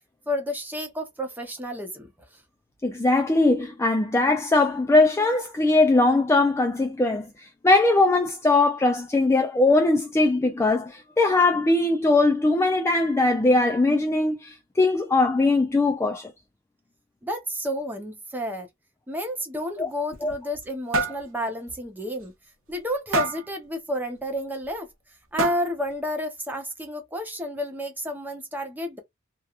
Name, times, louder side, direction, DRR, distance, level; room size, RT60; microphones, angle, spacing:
voice 1, 0.3-2.1 17.2-18.7 19.1-22.3 22.7-24.9 25.3-29.0, equal, 10° right, 0.7 m, -31 dB
voice 2, 2.8-16.3 19.8-19.9 20.2-20.3, left 2 dB, 15° left, 0.3 m, -21 dB
sound 1, 19.9-20.7 20.9-21.2 21.7-21.8 22.2-22.3 23.1-23.5 24.6-24.7 25.4-25.8, right 1 dB, 75° right, 0.8 m, -26 dB
2.9 x 2.3 x 2.3 m
head